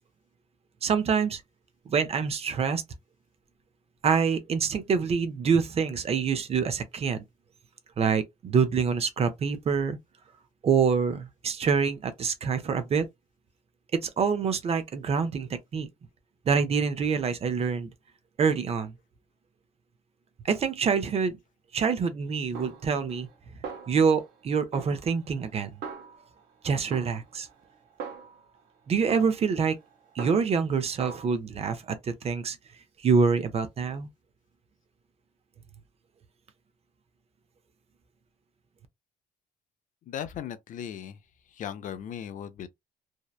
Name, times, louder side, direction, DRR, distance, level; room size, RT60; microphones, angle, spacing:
voice 1, 0.8-1.4 1.9-2.8 4.0-7.2 8.0-10.0 10.6-13.1 14.0-15.9 16.5-17.9 18.4-18.9 20.4-21.4 21.7-23.3 23.9-25.8 26.6-27.5 28.9-29.8 30.2-32.6 33.0-34.1, right 6 dB, 35° right, 0.5 m, -26 dB
Snare drum, 22.5-23.4 23.6-24.4 24.7-26.5 26.9-28.6 29.1-30.7 31.0-31.3, right 6 dB, 85° right, 0.8 m, -42 dB
voice 2, 40.1-41.2 41.5-42.7, left 9 dB, 50° left, 0.4 m, -37 dB
2.7 x 2.0 x 2.3 m
cardioid pair, 110°, 17 cm